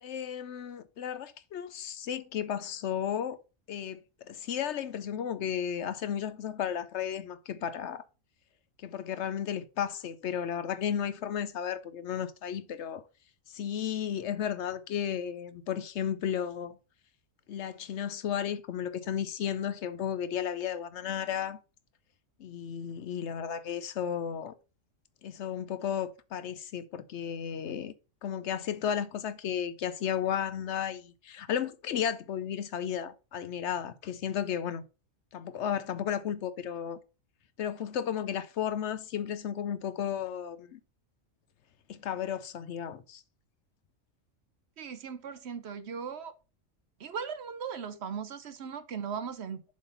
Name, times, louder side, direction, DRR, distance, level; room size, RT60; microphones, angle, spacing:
voice 1, 0.0-3.4 3.7-8.0 8.8-13.0 13.5-16.8 17.5-21.6 22.4-24.5 25.2-27.9 28.2-34.8 35.3-37.0 37.6-40.8 41.9-43.2, left 9 dB, 65° left, 0.9 m, -34 dB
voice 2, 44.8-46.3 47.0-49.6, right 6 dB, 60° right, 0.9 m, -38 dB
7.3 x 3.8 x 5.6 m
omnidirectional pair, 1.3 m